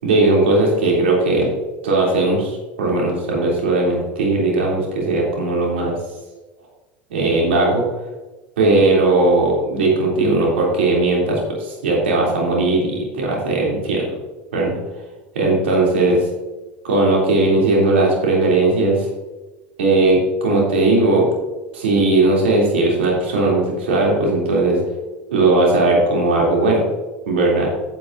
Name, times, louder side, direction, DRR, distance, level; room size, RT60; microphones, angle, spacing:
voice 1, 0.0-1.5 1.8-6.0 7.1-7.8 8.6-14.1 14.5-14.8 15.3-16.2 16.8-19.1 19.8-21.2 21.7-24.8 25.3-26.8 27.3-27.7, right 2 dB, 85° right, -3 dB, 3.4 m, -17 dB
11.0 x 9.1 x 2.8 m, 1.1 s
hypercardioid pair, 90°, 6 cm